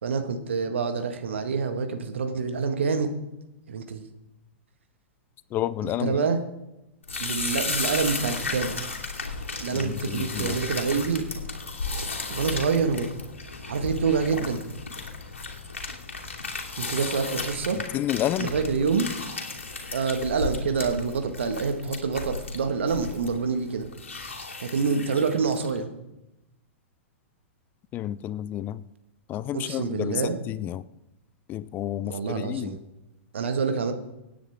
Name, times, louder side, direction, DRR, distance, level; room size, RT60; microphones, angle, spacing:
voice 1, 0.0-3.1 3.7-4.0 5.8-6.4 7.2-8.8 9.6-11.2 12.3-13.1 13.6-14.6 16.8-17.8 18.4-19.1 19.9-23.9 24.6-25.9 29.5-30.4 32.1-32.8 33.3-33.9, right 5 dB, 70° right, 7 dB, 1.8 m, -27 dB
voice 2, 5.5-6.4 9.7-10.6 17.9-18.5 27.9-28.8 29.3-30.8 31.5-32.8, left 12 dB, 30° left, 18 dB, 0.5 m, -30 dB
sound 1, 7.0-25.8, left 4 dB, 80° left, 2.7 m, -34 dB
24.5 x 9.6 x 3.7 m, 0.93 s
figure-of-eight pair, 105°, 7 cm